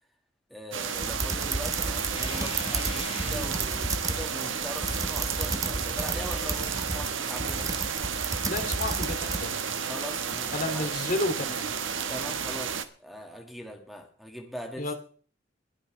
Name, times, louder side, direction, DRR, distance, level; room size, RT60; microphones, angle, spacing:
voice 1, 0.5-7.7 9.9-10.9 12.1-14.9, equal, ahead, 3 dB, 1.7 m, -41 dB
sound 1, 0.7-12.8, right 7 dB, 75° right, 1.2 m, -32 dB
sound 2, 1.0-9.4, right 3 dB, 20° right, 0.8 m, -32 dB
sound 3, 2.2-7.2, left 3 dB, 30° left, 1.2 m, -43 dB
voice 2, 8.4-9.6 10.5-11.7 14.8-14.9, left 1 dB, 45° left, 5 dB, 2.5 m, -31 dB
21.0 x 11.0 x 3.3 m, 0.43 s
head